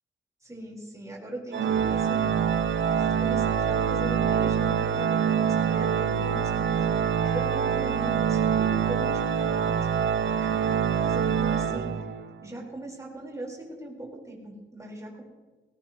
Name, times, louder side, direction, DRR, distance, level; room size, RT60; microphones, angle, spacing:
voice 1, 0.4-2.4 3.0-9.8 10.4-12.1 12.4-15.2, right 1 dB, 15° right, -3 dB, 4.6 m, -39 dB
Organ, 1.5-12.4, right 7 dB, 70° right, 0.6 m, -25 dB
19.0 x 18.0 x 3.1 m, 1.3 s
wide cardioid pair, 120°, 20 cm